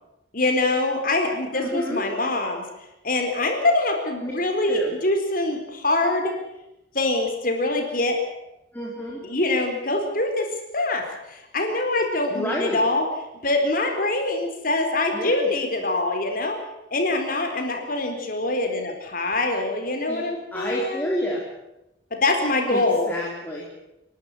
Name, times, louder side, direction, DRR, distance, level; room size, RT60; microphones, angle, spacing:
voice 1, 0.3-2.6 3.0-6.3 6.9-8.2 9.2-10.5 10.7-13.1 13.4-16.6 16.9-21.1 22.1-23.1, left 2 dB, 45° left, 4 dB, 4.2 m, -24 dB
voice 2, 1.5-2.0 4.2-4.3 4.7-4.9 8.7-9.2 12.3-12.8 15.1-15.5 20.1-21.4 22.7-23.7, equal, 10° left, -3 dB, 3.6 m, -29 dB
27.5 x 12.0 x 9.7 m, 0.90 s
head